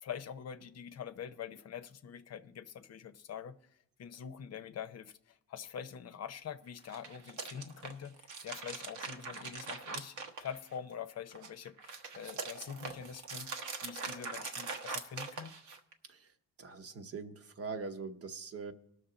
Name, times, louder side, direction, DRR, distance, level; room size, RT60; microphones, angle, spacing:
voice 1, 0.0-3.7 4.0-15.6, left 8 dB, 55° left, 0.7 m, -45 dB
sound 1, 6.8-10.9 11.3-15.9, right 4 dB, 75° right, 1.2 m, -42 dB
voice 2, 16.6-18.7, right 4 dB, 50° right, 1.0 m, -42 dB
19.0 x 6.4 x 3.9 m
cardioid pair, 90°, 30 cm